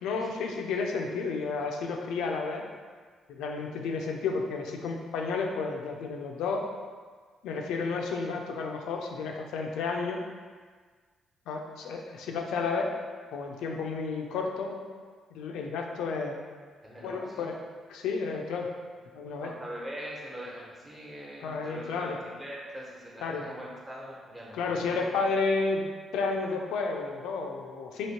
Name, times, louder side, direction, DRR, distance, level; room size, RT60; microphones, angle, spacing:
voice 1, 0.0-2.6 3.3-6.7 7.4-10.2 11.5-12.9 13.3-14.8 15.3-16.4 17.0-17.6 17.9-18.7 19.1-19.5 21.4-22.2 23.2-23.5 24.5-25.9 26.1-28.1, left 4 dB, 85° left, 2 dB, 0.4 m, -31 dB
voice 2, 16.8-17.5 19.4-25.0, equal, 20° right, -5 dB, 1.2 m, -42 dB
3.0 x 2.9 x 4.3 m, 1.5 s
cardioid pair, 90°, 0 cm